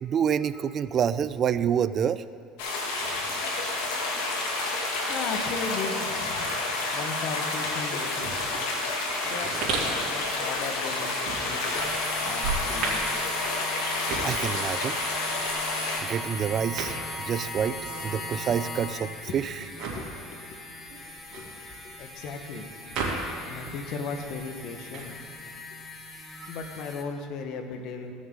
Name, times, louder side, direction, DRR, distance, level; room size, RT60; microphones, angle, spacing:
voice 1, 0.0-2.2 4.9-5.2 14.2-15.0 16.0-17.8 18.0-19.6 26.3-26.6, right 8 dB, 40° right, 14 dB, 0.3 m, -28 dB
sound 1, 2.6-16.0, left 2 dB, 75° left, 1.8 m, -30 dB
voice 2, 5.1-6.6 6.9-8.7 9.2-11.1 11.4-13.0 18.2-18.3 19.3-19.4 19.9-20.6 21.3-22.7 23.5-25.2 26.5-28.1, left 4 dB, 60° left, 6 dB, 1.1 m, -37 dB
sound 2, 8.1-23.7 24.0-25.6, right 4 dB, 55° right, 2.7 m, -36 dB
sound 3, 11.7-27.0, left 2 dB, 20° left, 1.2 m, -38 dB
16.5 x 6.4 x 3.7 m, 2.4 s
supercardioid pair, 95°, 0 cm